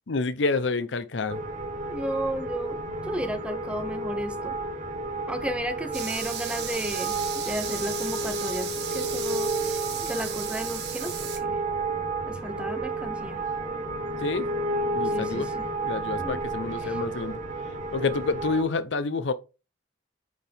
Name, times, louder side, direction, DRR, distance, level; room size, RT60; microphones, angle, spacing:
voice 1, 0.1-1.4 14.2-14.5 14.9-15.5 15.8-17.4 17.9-19.3, left 3 dB, 85° left, 0.7 m, -28 dB
sound 1, 1.3-18.6, right 2 dB, 45° right, 1.1 m, -31 dB
voice 2, 1.9-2.8 3.1-4.5 5.3-9.5 10.0-11.1 11.4-11.6 12.3-13.4 15.1-15.7 16.2-16.4 16.8-17.0, right 1 dB, 5° right, 0.8 m, -33 dB
sound 2, 5.9-11.4, right 9 dB, 60° right, 1.4 m, -35 dB
9.4 x 4.6 x 3.5 m
head